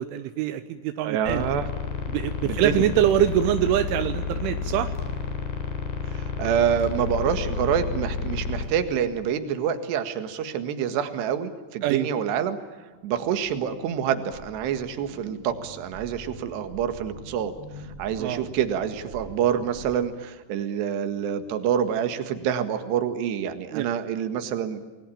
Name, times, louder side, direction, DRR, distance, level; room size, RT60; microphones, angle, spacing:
voice 1, 0.0-1.4 2.1-4.9 11.8-12.1 18.2-18.4 23.7-23.8, right 11 dB, 85° right, 9 dB, 3.4 m, -24 dB
voice 2, 1.0-1.7 2.4-2.9 6.1-12.6 13.0-17.5 18.0-24.8, right 8 dB, 65° right, 8 dB, 3.7 m, -27 dB
sound 1, 1.3-8.7, left 5 dB, 65° left, 5.5 m, -30 dB
sound 2, 12.9-20.0, equal, 25° right, 5.6 m, -44 dB
29.0 x 21.0 x 8.6 m, 1.3 s
omnidirectional pair, 5.5 m